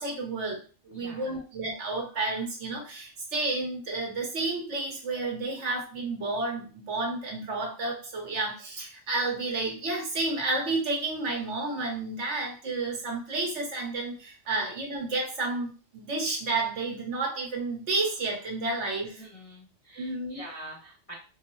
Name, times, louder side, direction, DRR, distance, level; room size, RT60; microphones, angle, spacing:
voice 1, 0.0-19.2 20.0-20.4, right 3 dB, 60° right, -1 dB, 1.3 m, -31 dB
voice 2, 0.9-1.4 19.2-21.2, right 1 dB, 35° left, -5 dB, 0.6 m, -45 dB
4.3 x 2.1 x 3.1 m, 0.36 s
omnidirectional pair, 1.4 m